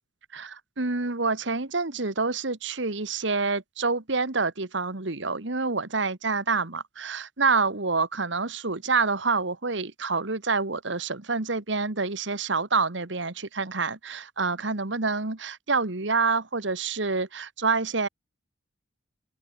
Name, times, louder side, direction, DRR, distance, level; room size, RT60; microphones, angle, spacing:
voice 1, 0.3-18.1, right 4 dB, 70° right, 1.7 m, -27 dB
open air
head